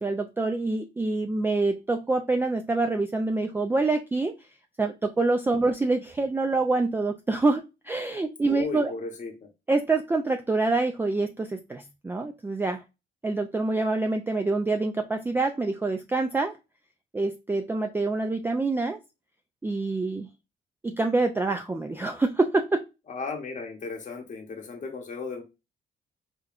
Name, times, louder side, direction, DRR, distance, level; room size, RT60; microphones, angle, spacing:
voice 1, 0.0-4.3 4.8-8.9 9.7-12.8 13.2-16.5 17.1-19.0 19.6-20.3 20.8-22.8, right 3 dB, 10° right, 4 dB, 0.3 m, -26 dB
voice 2, 8.4-9.3 23.1-25.4, left 4 dB, 40° left, 1 dB, 0.8 m, -35 dB
5.1 x 2.2 x 2.4 m, 0.26 s
cardioid pair, 90°, 20 cm